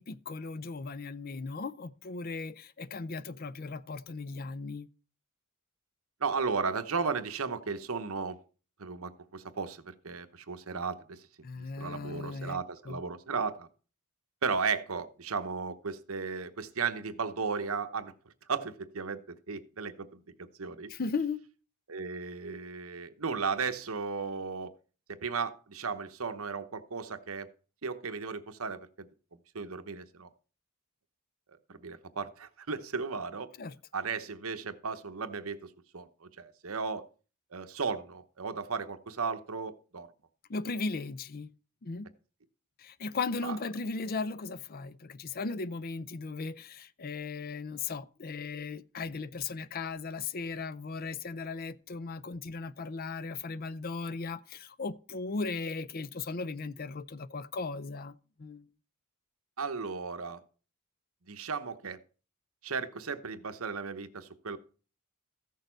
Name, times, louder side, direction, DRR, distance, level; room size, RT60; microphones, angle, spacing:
voice 1, 0.0-4.9 11.4-12.6 12.9-13.0 20.9-21.4 33.6-33.8 40.5-41.5 41.8-42.1 42.8-58.7, left 4 dB, 40° left, 0.5 m, -37 dB
voice 2, 6.2-8.4 8.8-11.3 11.6-13.7 14.4-18.1 18.5-20.9 21.9-24.7 25.1-27.5 27.8-29.1 29.5-30.3 31.7-33.5 33.9-37.1 37.5-40.1 43.4-43.6 59.6-60.4 61.3-62.0 62.6-64.6, right 5 dB, 70° right, 0.9 m, -35 dB
15.0 x 6.6 x 4.5 m
head